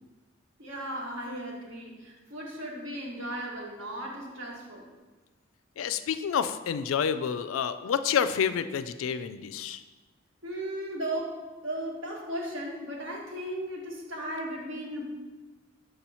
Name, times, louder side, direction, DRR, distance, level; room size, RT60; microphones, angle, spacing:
voice 1, 0.6-4.9 10.4-11.4 11.6-15.1, right 1 dB, 75° right, -2 dB, 1.4 m, -36 dB
voice 2, 5.8-9.8, left 7 dB, 85° left, 12 dB, 0.3 m, -29 dB
6.8 x 3.0 x 5.4 m, 1.2 s
head